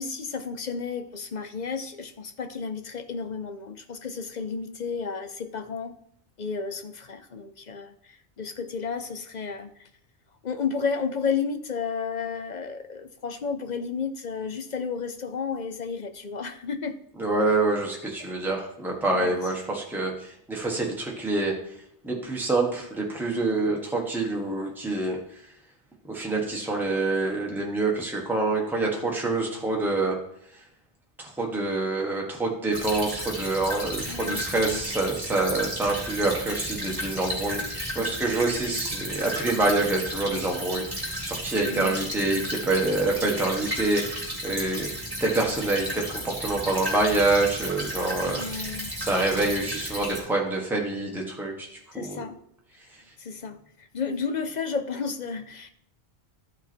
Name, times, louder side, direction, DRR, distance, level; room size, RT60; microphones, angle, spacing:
voice 1, 0.0-5.9 6.4-9.9 10.4-17.0 19.1-19.4 34.1-34.4 34.7-34.8 41.7-42.1 48.3-48.9 51.9-52.4 53.2-55.7, left 5 dB, 45° left, 8 dB, 0.7 m, -32 dB
voice 2, 17.1-21.5 22.0-25.2 26.0-30.2 31.2-48.4 49.0-51.7 51.9-52.3, right 2 dB, ahead, -1 dB, 1.4 m, -26 dB
Stream / Trickle dribble, 32.7-50.2, equal, 20° right, 3.0 m, -33 dB
13.0 x 5.8 x 4.5 m, 0.72 s
omnidirectional pair, 1.1 m